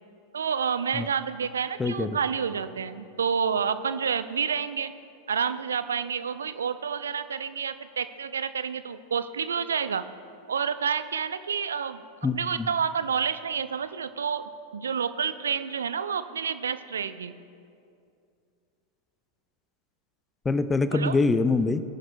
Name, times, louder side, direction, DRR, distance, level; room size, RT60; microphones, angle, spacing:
voice 1, 0.3-4.9 5.3-10.0 10.5-12.0 12.3-17.3 20.9-21.2, right 6 dB, 70° right, 13 dB, 0.4 m, -29 dB
voice 2, 1.8-2.2 12.2-12.7 20.4-21.8, left 3 dB, 15° left, 13 dB, 0.5 m, -24 dB
20.5 x 10.5 x 2.2 m, 2.4 s
figure-of-eight pair, 90°, 0 cm